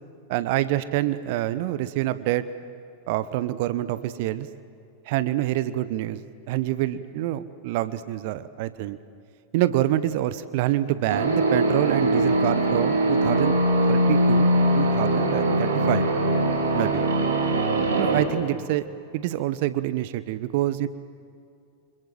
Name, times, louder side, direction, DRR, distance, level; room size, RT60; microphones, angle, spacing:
voice 1, 0.3-2.4 3.1-4.5 5.1-6.2 6.5-9.0 9.5-13.6 13.9-14.5 14.8-16.1 16.7-17.0 18.0-18.9 19.1-20.9, right 14 dB, 50° right, 14 dB, 1.0 m, -26 dB
sound 1, 11.1-18.3, right 1 dB, 70° right, 3.6 m, -22 dB
29.0 x 26.5 x 7.8 m, 2.5 s
figure-of-eight pair, 90°, 0 cm